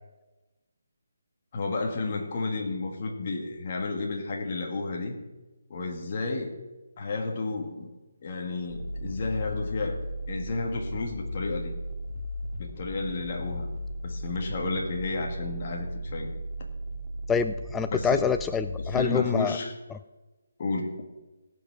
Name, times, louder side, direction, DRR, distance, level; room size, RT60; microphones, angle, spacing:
voice 1, 1.5-5.2 5.7-6.5 7.0-7.9 8.2-11.7 12.6-13.7 14.0-16.3 17.9-18.3 18.8-19.7 20.6-20.9, left 3 dB, 40° left, 1 dB, 2.1 m, -31 dB
sound 1, 8.7-19.0, equal, 35° right, 2.2 m, -36 dB
voice 2, 17.3-19.6, left 7 dB, 10° left, 9 dB, 0.3 m, -26 dB
18.0 x 6.1 x 6.2 m, 1.1 s
figure-of-eight pair, 155°, 0 cm